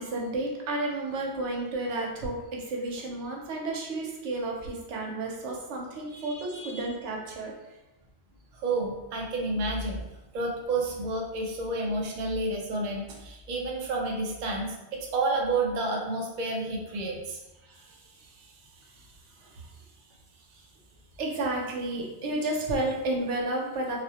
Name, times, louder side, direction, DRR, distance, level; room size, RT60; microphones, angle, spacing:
voice 1, 0.0-7.5 17.6-19.7 20.5-20.6 21.2-24.0, right 2 dB, 90° right, -1 dB, 0.9 m, -32 dB
voice 2, 6.1-6.9 8.5-10.0 10.3-17.4, right 2 dB, 55° right, -1 dB, 0.5 m, -30 dB
2.4 x 2.0 x 2.7 m, 0.96 s
omnidirectional pair, 1.1 m